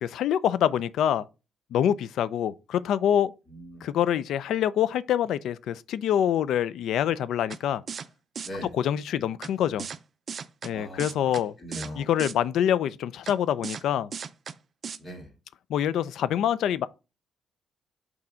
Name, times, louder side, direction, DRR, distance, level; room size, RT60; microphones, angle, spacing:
voice 1, 0.0-1.3 1.7-3.3 3.8-7.8 8.6-9.9 10.6-11.5 11.9-14.1 15.7-16.9, left 10 dB, 75° left, 0.4 m, -25 dB
voice 2, 3.5-3.8 8.4-8.7 10.7-11.3 11.6-12.1 15.0-15.3, equal, 25° left, 2.6 m, -39 dB
sound 1, 7.5-7.6 7.9-8.1 8.4-8.5 9.4-9.5 9.8-10.0 10.3-10.7 11.0-11.4 11.7-11.9 12.2-12.3 13.3-13.4 13.6-13.8 14.1-14.5 14.8-15.0, right 6 dB, 45° right, 0.5 m, -36 dB
6.0 x 3.8 x 4.4 m
cardioid pair, 90°, 0 cm